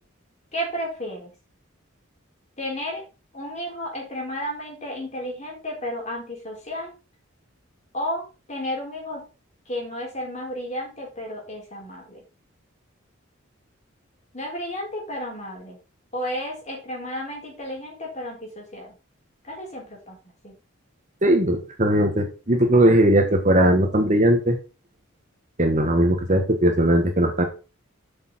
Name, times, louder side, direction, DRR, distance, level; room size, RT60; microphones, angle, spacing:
voice 1, 0.5-1.3 2.6-3.0 3.3-6.9 7.9-9.2 9.7-12.2 14.3-15.8 16.1-18.9 19.4-20.2 20.4-20.5, equal, 35° left, 0 dB, 3.8 m, -32 dB
voice 2, 21.2-24.6 25.6-27.4, right 1 dB, 35° right, 4 dB, 1.3 m, -19 dB
8.3 x 6.4 x 4.2 m, 0.31 s
head